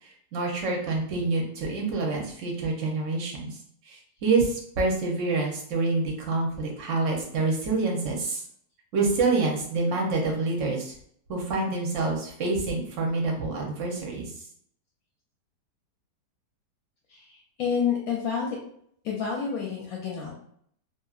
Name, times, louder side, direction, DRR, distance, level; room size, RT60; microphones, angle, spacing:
voice 1, 0.0-3.6 3.9-8.4 8.9-10.9 11.3-14.3, right 3 dB, 60° right, 0 dB, 0.9 m, -27 dB
voice 2, 17.1-18.6 19.0-20.3, left 6 dB, 70° left, -2 dB, 0.9 m, -29 dB
2.8 x 2.6 x 2.3 m, 0.65 s
omnidirectional pair, 1.8 m